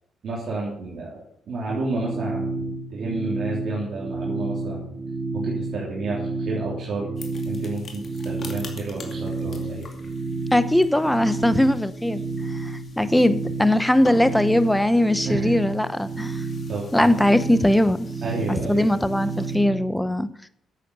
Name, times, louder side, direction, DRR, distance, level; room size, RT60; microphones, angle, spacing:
voice 1, 0.2-1.2 1.5-2.7 2.9-4.9 5.3-7.2 7.5-9.9 15.3-15.7 16.7-17.1 18.2-18.9, right 3 dB, 60° right, -5 dB, 3.5 m, -31 dB
sound 1, 1.7-19.9, right 3 dB, 35° right, 2.0 m, -31 dB
sound 2, 7.2-19.6, left 4 dB, 45° left, 2.5 m, -46 dB
voice 2, 10.5-12.2 12.5-16.4 16.9-18.1 18.5-20.3, left 1 dB, 5° left, 13 dB, 0.8 m, -20 dB
10.0 x 8.4 x 6.9 m, 0.72 s
cardioid pair, 90°, 0 cm